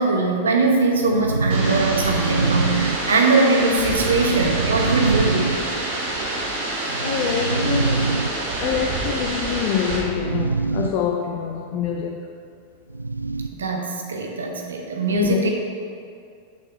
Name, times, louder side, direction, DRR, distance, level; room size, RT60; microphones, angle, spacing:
voice 1, 0.0-5.6 13.5-15.5, right 3 dB, 70° right, 1 dB, 1.0 m, -21 dB
sound 1, 0.6-3.4 3.9-6.0 6.9-8.7 9.9-10.9 11.2-11.3 12.9-13.7, right 3 dB, 85° right, 0.3 m, -24 dB
sound 2, 1.5-10.0, right 2 dB, 50° right, 1.9 m, -27 dB
voice 2, 6.9-12.3 15.1-15.5, left 7 dB, 45° left, 1 dB, 0.5 m, -26 dB
6.6 x 6.2 x 4.9 m, 2.4 s
figure-of-eight pair, 90°, 0 cm